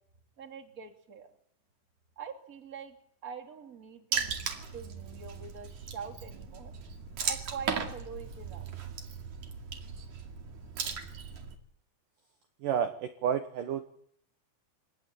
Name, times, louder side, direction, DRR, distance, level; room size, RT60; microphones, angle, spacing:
voice 1, 0.4-1.3 2.2-3.0 3.2-6.7 7.3-8.7, right 6 dB, 25° right, 3 dB, 2.3 m, -44 dB
Water / Splash splatter, 4.1-11.5, right 6 dB, 50° right, 3.1 m, -37 dB
voice 2, 12.6-13.9, right 8 dB, 70° right, 8 dB, 2.1 m, -30 dB
24.5 x 18.0 x 9.1 m, 0.70 s
omnidirectional pair, 5.3 m